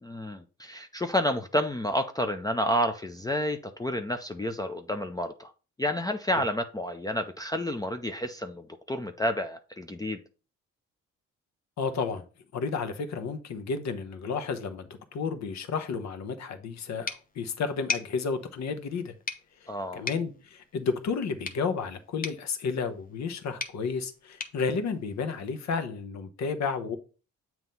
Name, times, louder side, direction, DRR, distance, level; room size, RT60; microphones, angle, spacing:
voice 1, 0.0-5.5 5.8-10.2 19.7-20.1, left 1 dB, 15° left, 0.5 m, -30 dB
voice 2, 11.8-12.2 12.5-19.1 19.6-27.0, left 5 dB, 65° left, 1.1 m, -32 dB
sound 1, 17.1-25.7, left 4 dB, 30° left, 0.9 m, -41 dB
7.5 x 3.0 x 5.4 m
cardioid pair, 90°, 30 cm